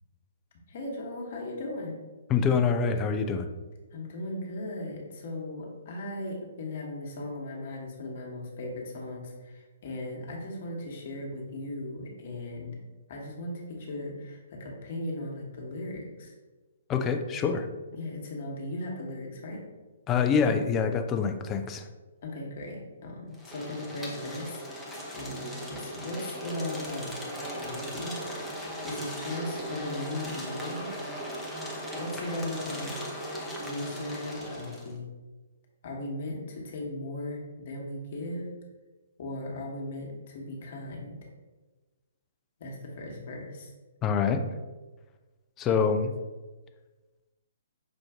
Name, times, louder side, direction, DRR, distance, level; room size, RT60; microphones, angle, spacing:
voice 1, 0.7-1.9 3.9-12.8 13.1-16.3 17.9-19.6 22.2-27.2 27.6-28.2 28.8-30.9 31.9-33.0 33.6-35.1 35.8-38.5 39.2-41.1 42.6-43.7, left 1 dB, 50° left, -1 dB, 1.1 m, -37 dB
voice 2, 2.3-3.5 16.9-17.7 20.1-21.8 44.0-44.4 45.6-46.1, left 6 dB, 20° left, 6 dB, 0.4 m, -25 dB
sound 1, 23.3-34.9, equal, ahead, 0.7 m, -38 dB
5.7 x 2.5 x 3.5 m, 1.2 s
figure-of-eight pair, 130°, 0 cm